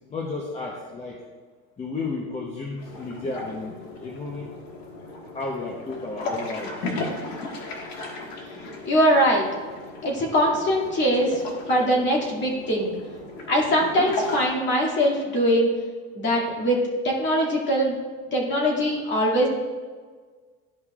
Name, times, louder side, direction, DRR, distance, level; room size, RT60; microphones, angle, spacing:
voice 1, 0.1-1.2 1.8-4.6 5.3-7.0, left 3 dB, 20° left, -1 dB, 0.9 m, -33 dB
sound 1, 2.8-14.4, left 2 dB, 70° left, 1.6 m, -36 dB
voice 2, 8.8-9.5 10.0-11.4 11.7-12.9 13.5-15.7 16.2-18.0 18.3-19.5, equal, 40° left, -2 dB, 2.3 m, -22 dB
13.0 x 5.2 x 2.4 m, 1.5 s
cardioid pair, 135°, 29 cm